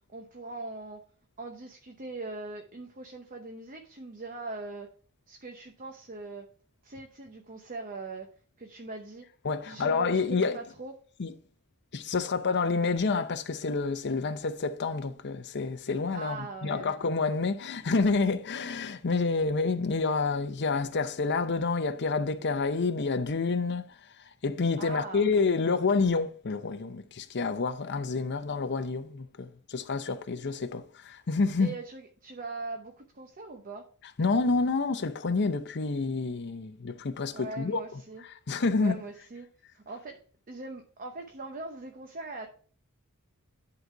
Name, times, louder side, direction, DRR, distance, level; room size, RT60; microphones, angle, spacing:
voice 1, 0.1-1.0 1.4-4.9 5.3-6.5 6.8-8.3 8.6-9.2 9.7-10.9 16.1-16.9 24.8-25.3 31.6-33.9 37.3-38.2 38.8-39.5 39.7-42.5, right 3 dB, 40° right, 0.9 m, -41 dB
voice 2, 9.4-10.6 11.2-11.3 11.9-23.9 24.4-31.7 34.2-37.8 38.5-39.0, left 4 dB, 50° left, 0.7 m, -28 dB
11.0 x 4.0 x 4.6 m
head